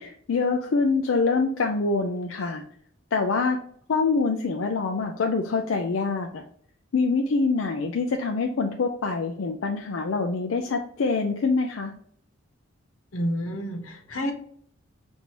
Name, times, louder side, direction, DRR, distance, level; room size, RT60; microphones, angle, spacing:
voice 1, 0.0-2.6 3.1-3.6 3.9-6.4 6.9-11.9, left 4 dB, 65° left, 3 dB, 0.4 m, -25 dB
voice 2, 13.1-14.3, equal, 85° left, 3 dB, 1.0 m, -29 dB
6.1 x 2.7 x 2.9 m, 0.63 s
head